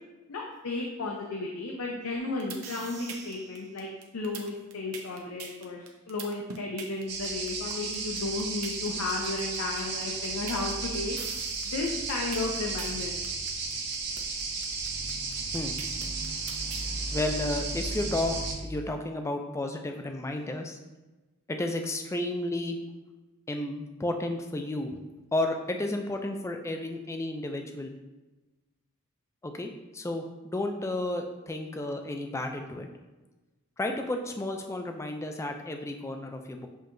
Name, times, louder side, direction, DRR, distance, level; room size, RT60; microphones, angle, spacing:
voice 1, 0.3-11.1 11.6-13.1, left 3 dB, 75° left, 0 dB, 0.5 m, -34 dB
sound 1, 2.2-16.9, right 6 dB, 80° right, 0.7 m, -43 dB
sound 2, 7.1-18.5, right 4 dB, 50° right, 0.8 m, -34 dB
voice 2, 17.1-20.8 21.5-22.8 23.5-25.0 25.3-28.0 29.4-32.9 33.8-36.7, left 1 dB, 15° left, 5 dB, 0.3 m, -32 dB
7.2 x 2.8 x 2.5 m, 1.1 s
head